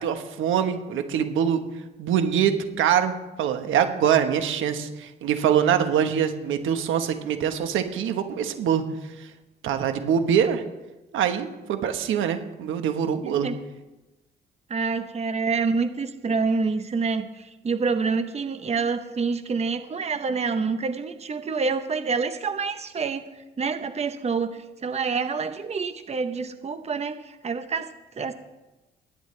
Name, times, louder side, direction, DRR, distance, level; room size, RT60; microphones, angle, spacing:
voice 1, 0.0-1.6 2.0-8.8 9.2-9.3 9.6-10.6 11.1-13.5, right 8 dB, 85° right, 7 dB, 1.3 m, -24 dB
voice 2, 13.2-13.5 14.7-28.3, right 4 dB, 35° right, 9 dB, 0.9 m, -27 dB
21.5 x 10.5 x 3.3 m, 1.1 s
cardioid pair, 90°, 20 cm